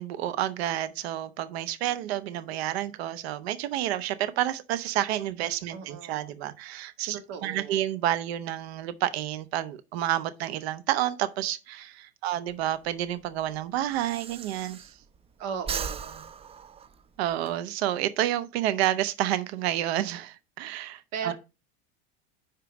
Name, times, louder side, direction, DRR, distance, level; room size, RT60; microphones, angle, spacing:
voice 1, 0.0-14.9 17.2-21.3, right 13 dB, 75° right, 0.8 m, -29 dB
voice 2, 5.7-6.3 7.1-7.8 15.4-16.3 21.1-21.3, right 7 dB, 55° right, 1.9 m, -37 dB
Breathing, 12.5-15.3 15.6-17.5, right 6 dB, 20° right, 0.4 m, -38 dB
5.2 x 4.5 x 6.1 m
hypercardioid pair, 95°, 32 cm